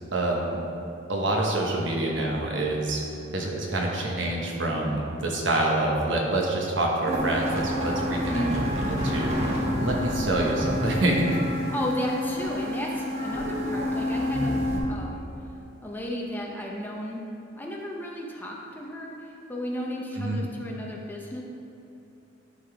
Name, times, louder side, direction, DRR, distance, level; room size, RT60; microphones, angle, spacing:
voice 1, 0.1-0.6 1.1-3.0 3.3-8.5 8.9-11.3 20.1-20.4, right 2 dB, 75° right, -1 dB, 1.1 m, -26 dB
sound 1, 7.1-14.8, left 1 dB, 35° right, 1.3 m, -28 dB
voice 2, 8.3-8.7 11.7-15.2 15.8-17.2 17.6-21.4, equal, 10° left, -2 dB, 0.7 m, -33 dB
11.5 x 4.1 x 3.4 m, 2.9 s
head